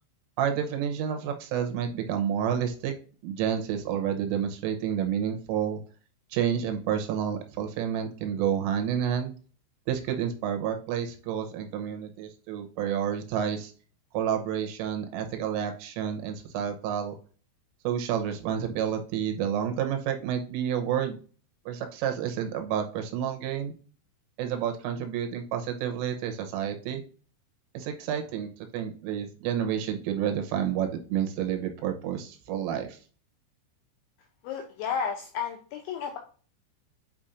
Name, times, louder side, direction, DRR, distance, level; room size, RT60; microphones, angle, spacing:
voice 1, 0.4-2.9 3.2-5.8 6.3-9.3 9.9-13.7 14.1-17.1 17.8-21.2 21.7-23.7 24.4-27.0 27.7-33.0, right 9 dB, 85° right, 5 dB, 3.4 m, -29 dB
voice 2, 34.4-36.2, left 7 dB, 80° left, 2 dB, 2.8 m, -32 dB
8.7 x 5.0 x 2.6 m, 0.39 s
omnidirectional pair, 6.0 m